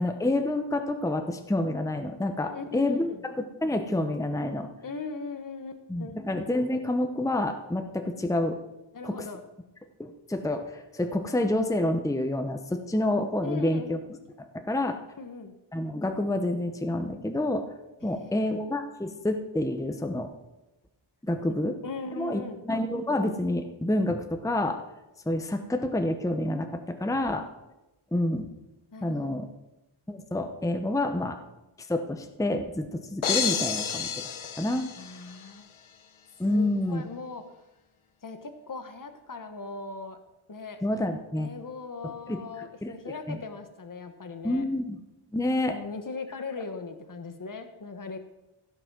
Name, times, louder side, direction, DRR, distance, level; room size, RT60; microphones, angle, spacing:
voice 1, 0.0-4.7 5.9-8.6 9.0-9.2 10.0-14.0 14.5-15.0 15.7-17.7 18.0-20.3 21.2-21.8 22.2-24.8 25.3-27.5 28.1-28.5 29.0-29.5 30.1-31.4 31.8-34.9 36.4-37.0 40.8-41.5 42.0-43.4 44.4-45.0 45.3-45.8, left 1 dB, 5° left, 6 dB, 0.8 m, -28 dB
voice 2, 2.4-3.2 4.8-6.2 8.9-9.4 13.4-14.0 15.2-15.5 18.0-18.5 21.4-21.5 21.8-22.6 28.9-29.5 35.0-35.7 36.4-37.4 38.2-40.2 40.5-40.8 41.4-44.6 45.7-48.2, left 3 dB, 40° left, 8 dB, 1.1 m, -39 dB
sound 1, 33.2-35.5, left 7 dB, 75° left, 0.9 m, -30 dB
15.5 x 5.9 x 6.1 m, 0.96 s
wide cardioid pair, 85°, 50 cm